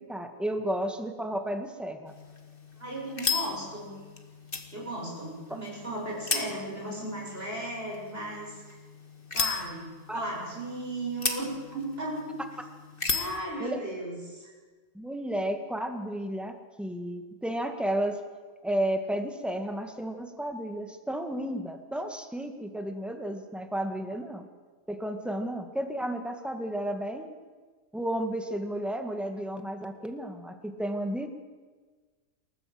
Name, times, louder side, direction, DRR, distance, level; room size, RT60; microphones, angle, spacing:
voice 1, 0.0-2.1 5.5-5.6 10.1-10.2 13.6-13.8 14.9-18.2 18.6-24.5 24.9-27.4 27.9-31.3, right 1 dB, ahead, 5 dB, 2.0 m, -32 dB
sound 1, 2.1-13.4, left 4 dB, 40° left, 2.2 m, -36 dB
voice 2, 2.8-4.0 4.7-8.8 9.3-12.4 13.1-14.5, right 1 dB, 45° right, -3 dB, 8.0 m, -36 dB
28.5 x 14.5 x 8.0 m, 1.4 s
omnidirectional pair, 1.4 m